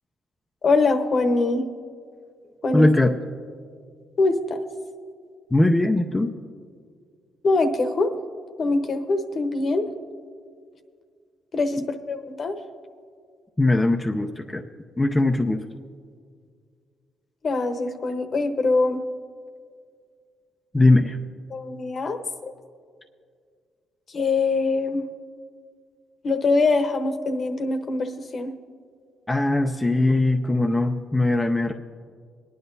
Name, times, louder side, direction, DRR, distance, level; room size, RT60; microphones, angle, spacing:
voice 1, 0.6-1.6 2.6-2.9 4.2-4.6 7.4-8.1 8.6-9.9 11.5-12.6 17.4-19.0 21.5-22.5 24.1-25.1 26.2-28.5, left 3 dB, 45° left, 6 dB, 1.0 m, -23 dB
voice 2, 2.7-3.1 5.5-6.3 13.6-14.6 15.0-15.6 20.7-21.2 29.3-31.7, left 2 dB, 15° left, 2 dB, 0.6 m, -20 dB
21.0 x 9.9 x 2.7 m, 2.1 s
cardioid pair, 90°, 0 cm